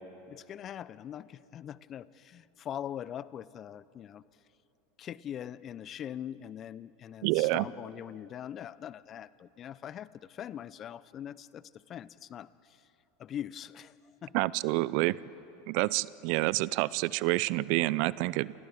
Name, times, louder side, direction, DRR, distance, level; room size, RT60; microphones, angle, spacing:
voice 1, 0.3-4.2 5.0-12.8 13.2-13.9 14.2-14.3, left 10 dB, 35° left, 19 dB, 0.6 m, -42 dB
voice 2, 7.2-7.7 14.3-15.2 15.7-18.5, right 20 dB, 55° right, 21 dB, 0.4 m, -28 dB
28.5 x 28.0 x 3.6 m, 2.9 s
hypercardioid pair, 85°, 0 cm